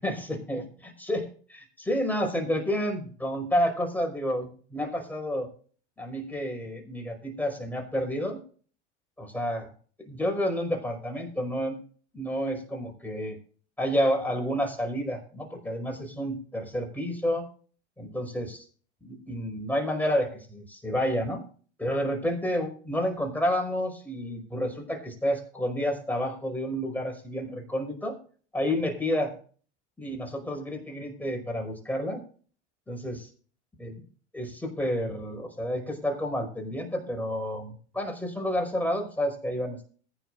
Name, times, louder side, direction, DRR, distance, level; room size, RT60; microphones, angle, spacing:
voice 1, 0.0-5.5 6.0-8.4 9.2-9.7 10.0-11.8 12.1-13.4 13.8-17.5 18.0-18.6 19.0-21.4 21.8-28.2 28.5-29.3 30.0-32.2 32.9-33.3 33.8-34.0 34.3-39.9, equal, 5° left, 3 dB, 5.4 m, -30 dB
21.5 x 9.8 x 2.6 m, 0.42 s
figure-of-eight pair, 80°, 35 cm